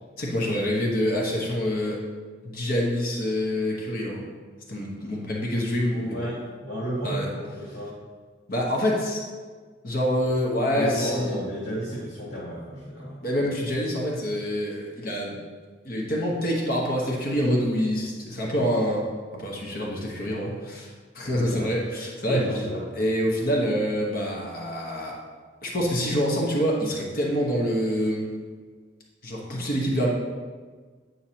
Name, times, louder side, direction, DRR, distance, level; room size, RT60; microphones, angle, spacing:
voice 1, 0.2-2.0 2.4-4.3 4.7-6.3 7.0-7.3 8.5-9.3 9.8-11.4 13.2-15.4 15.8-19.0 19.4-22.4 23.0-25.2 25.6-28.3 29.2-30.1, equal, 50° left, -2 dB, 1.1 m, -26 dB
voice 2, 5.9-8.0 10.7-13.2 21.4-21.6 21.9-22.8, equal, 85° left, -9 dB, 2.1 m, -32 dB
9.0 x 5.6 x 2.9 m, 1.5 s
head